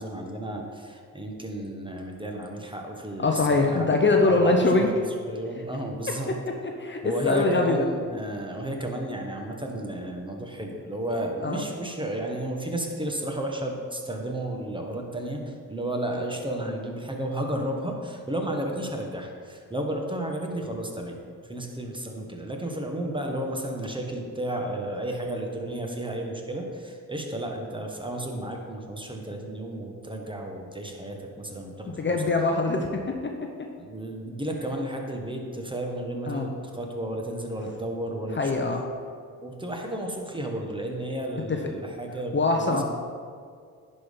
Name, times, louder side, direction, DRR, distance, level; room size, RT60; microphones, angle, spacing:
voice 1, 0.0-5.0 5.3-6.3 7.0-32.2 33.8-38.7 39.4-42.8, right 1 dB, 15° right, 1 dB, 1.4 m, -33 dB
voice 2, 3.2-4.9 6.8-7.8 11.4-11.6 32.0-32.9 36.3-36.5 38.4-38.8 41.5-41.6 42.3-42.8, left 3 dB, 30° left, 2 dB, 0.9 m, -22 dB
10.5 x 4.3 x 5.3 m, 2.1 s
supercardioid pair, 60°, 36 cm